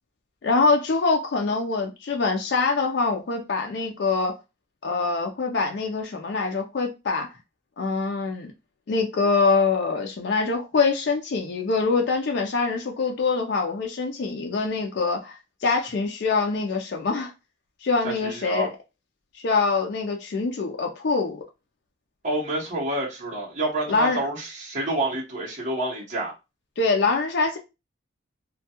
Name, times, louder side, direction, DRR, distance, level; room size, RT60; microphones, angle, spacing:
voice 1, 0.4-4.4 4.8-7.3 7.8-8.5 8.9-17.3 17.8-18.7 19.3-21.4 23.9-24.2 26.8-27.6, left 4 dB, 60° left, 0.4 m, -24 dB
voice 2, 18.0-18.7 22.2-26.3, right 1 dB, 40° right, 0.9 m, -28 dB
2.2 x 2.2 x 2.8 m
head